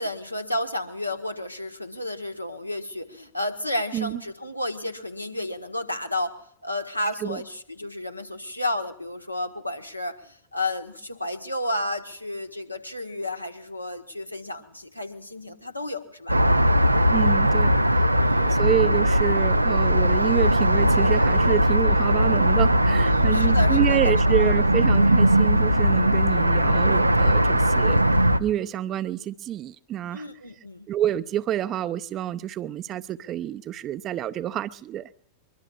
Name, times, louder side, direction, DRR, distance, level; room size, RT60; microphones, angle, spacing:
voice 1, 0.0-16.4 18.1-18.6 22.9-24.5 30.1-30.9, left 1 dB, 85° left, 1.5 m, -32 dB
sound 1, 16.3-28.4, equal, 85° right, 0.6 m, -19 dB
voice 2, 17.1-18.1 18.4-28.0 28.4-30.3 30.9-35.1, right 11 dB, 30° right, 0.6 m, -28 dB
23.5 x 22.0 x 2.5 m
figure-of-eight pair, 90°, 0 cm